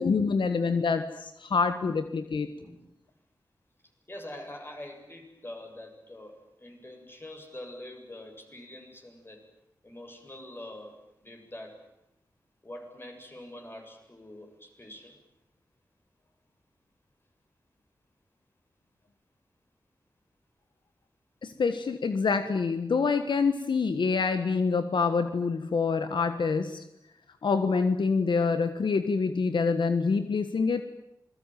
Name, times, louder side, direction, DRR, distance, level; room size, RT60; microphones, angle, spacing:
voice 1, 0.0-2.5 21.4-26.8 27.4-30.8, left 4 dB, 85° left, 9 dB, 1.6 m, -26 dB
voice 2, 4.1-9.4 9.8-11.8 12.6-15.2, left 1 dB, 30° left, 4 dB, 7.2 m, -45 dB
27.0 x 21.5 x 9.3 m, 0.82 s
wide cardioid pair, 75°, 8 cm